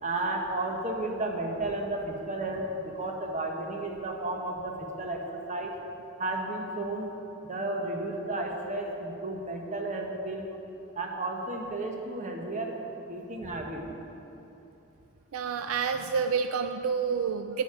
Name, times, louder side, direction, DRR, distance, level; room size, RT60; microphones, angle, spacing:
voice 1, 0.0-5.8 6.2-7.1 7.4-10.5 10.9-13.8, right 2 dB, 35° right, 1 dB, 1.0 m, -33 dB
voice 2, 15.3-17.6, right 6 dB, 75° right, 8 dB, 0.4 m, -28 dB
8.8 x 8.5 x 4.9 m, 2.9 s
head